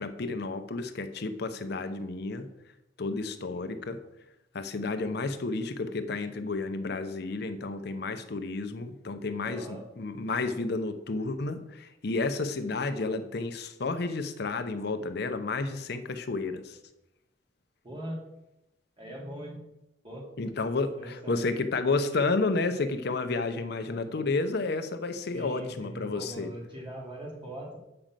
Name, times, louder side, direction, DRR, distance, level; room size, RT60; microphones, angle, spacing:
voice 1, 0.0-2.5 3.0-4.0 4.5-16.8 20.4-26.5, left 3 dB, 60° left, 0.7 m, -31 dB
voice 2, 9.4-9.8 17.8-18.2 19.0-19.6 20.0-20.2 21.0-21.4 25.3-27.8, right 1 dB, 25° right, 2.9 m, -40 dB
7.7 x 5.1 x 7.5 m
head